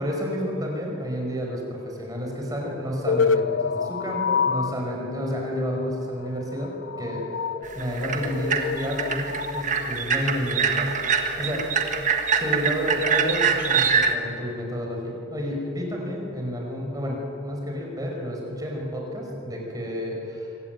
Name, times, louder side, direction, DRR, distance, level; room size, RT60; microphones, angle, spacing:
voice 1, 0.0-6.7 7.0-7.2 7.7-11.6 12.4-20.5, equal, 20° right, 0 dB, 5.1 m, -30 dB
sound 1, 3.1-13.4, left 5 dB, 75° left, 0.7 m, -29 dB
sound 2, 7.6-14.1, right 6 dB, 40° right, 1.7 m, -24 dB
25.0 x 16.5 x 9.3 m, 2.8 s
head